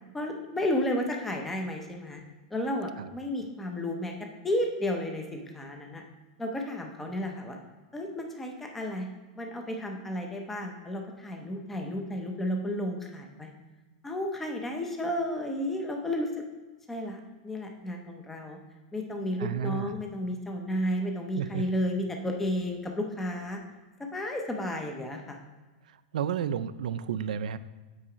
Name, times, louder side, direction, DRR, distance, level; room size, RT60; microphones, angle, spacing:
voice 1, 0.1-2.2 2.5-4.1 4.4-6.0 6.4-7.6 7.9-9.1 9.3-13.5 14.0-16.3 16.9-18.6 18.9-23.6 24.1-25.4, left 1 dB, 5° left, 2 dB, 0.6 m, -32 dB
voice 2, 19.4-20.0 21.4-21.6 25.9-27.6, right 9 dB, 80° right, 13 dB, 0.4 m, -32 dB
8.6 x 4.2 x 4.9 m, 1.3 s
supercardioid pair, 175°, 4 cm